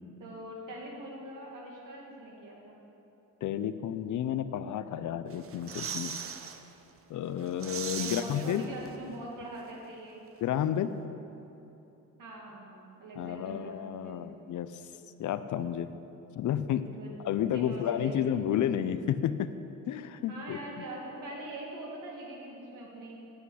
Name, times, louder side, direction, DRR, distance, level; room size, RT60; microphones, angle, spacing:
voice 1, 0.2-2.8 7.9-10.2 12.2-14.3 16.6-17.1 17.5-18.1 18.5-18.6 20.3-23.3, right 1 dB, 70° right, -2 dB, 2.4 m, -43 dB
voice 2, 3.4-6.1 7.1-8.6 10.4-10.9 13.2-14.8 15.2-15.9 16.4-16.9 17.2-19.5 19.9-20.6, left 10 dB, 60° left, 12 dB, 0.5 m, -31 dB
sound 1, 5.3-6.6 7.0-7.1 7.4-9.2 9.4-9.5, right 7 dB, 40° right, 0.7 m, -39 dB
9.5 x 8.3 x 8.3 m, 3.0 s
wide cardioid pair, 175°, 33 cm